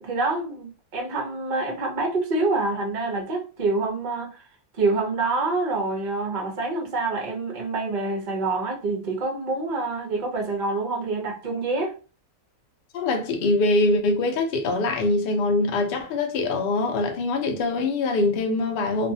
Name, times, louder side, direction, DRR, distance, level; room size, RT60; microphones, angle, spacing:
voice 1, 0.0-4.4 4.8-12.0, right 3 dB, 50° right, 0.5 m, -26 dB
voice 2, 12.9-19.1, left 2 dB, 75° left, 0.5 m, -23 dB
2.5 x 2.4 x 2.6 m
omnidirectional pair, 1.7 m